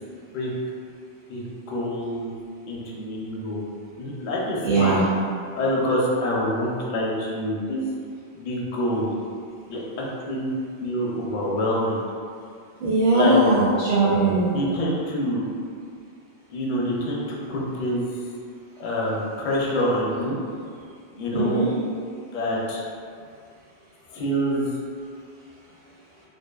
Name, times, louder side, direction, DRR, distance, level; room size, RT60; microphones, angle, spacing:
voice 1, 1.3-2.3 2.7-3.7 4.0-4.9 5.5-8.0 8.3-9.2 9.7-10.5 10.8-12.0 13.1-13.4 14.5-15.5 16.5-17.2 17.5-18.1 18.8-20.4 21.2-21.7 22.3-22.8 24.1-24.6, left 1 dB, 60° left, -4 dB, 0.6 m, -26 dB
voice 2, 4.6-5.0 12.8-14.6 21.3-21.7, right 2 dB, 55° right, -12 dB, 0.7 m, -20 dB
2.5 x 2.4 x 2.3 m, 2.2 s
omnidirectional pair, 1.1 m